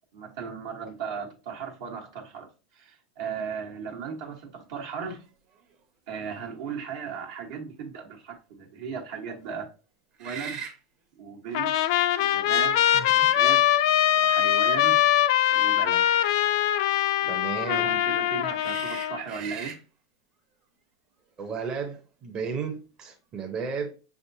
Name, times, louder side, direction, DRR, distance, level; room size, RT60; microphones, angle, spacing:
voice 1, 0.1-2.5 2.7-5.2 6.1-9.7 10.2-10.6 11.1-11.7 12.2-12.8 13.1-13.6 14.2-15.0 15.5-16.0 17.2-17.3 17.6-19.8, right 6 dB, 75° right, 1.4 m, -36 dB
sound 1, 4.9-5.0 5.5-5.7 10.1-10.8 12.0-12.1 13.1-13.9 15.8-16.0 18.6-19.8, right 6 dB, 50° right, 1.1 m, -40 dB
Trumpet, 11.5-19.2, left 12 dB, 65° left, 0.4 m, -22 dB
voice 2, 12.9-13.3 17.3-17.9 21.4-23.9, right 5 dB, 35° right, 0.8 m, -34 dB
5.5 x 3.5 x 2.7 m
hypercardioid pair, 115°, 2 cm